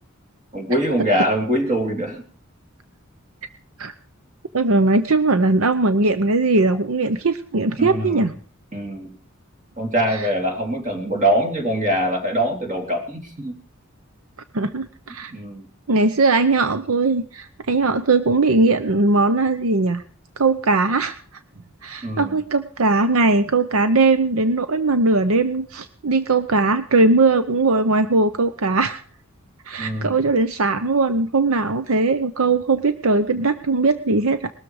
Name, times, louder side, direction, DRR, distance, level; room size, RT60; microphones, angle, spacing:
voice 1, 0.5-2.2 7.8-8.3 8.7-9.2 9.8-13.6 15.3-15.7 22.0-22.4 29.8-30.2, right 1 dB, 35° right, 3 dB, 3.5 m, -23 dB
voice 2, 4.5-8.3 10.1-10.3 14.5-15.3 15.9-20.0 20.4-21.1 21.8-29.0 29.7-34.5, right 3 dB, 70° right, 11 dB, 0.8 m, -19 dB
20.0 x 13.5 x 4.9 m, 0.42 s
head